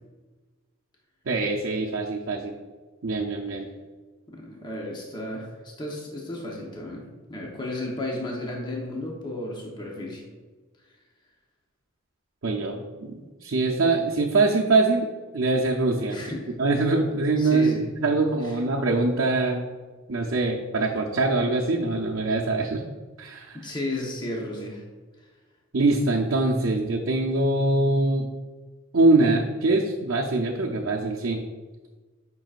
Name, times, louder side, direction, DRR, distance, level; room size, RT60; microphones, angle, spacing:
voice 1, 1.3-2.5 3.0-3.7 12.4-15.1 15.3-16.2 16.6-17.7 18.0-19.7 20.1-22.8 23.2-23.6 25.7-28.3 28.9-31.4, right 2 dB, 70° right, -2 dB, 0.6 m, -23 dB
voice 2, 4.3-10.2 16.1-16.6 17.4-18.6 23.5-24.8, left 1 dB, 20° left, -2 dB, 0.9 m, -34 dB
9.1 x 5.5 x 2.5 m, 1.3 s
head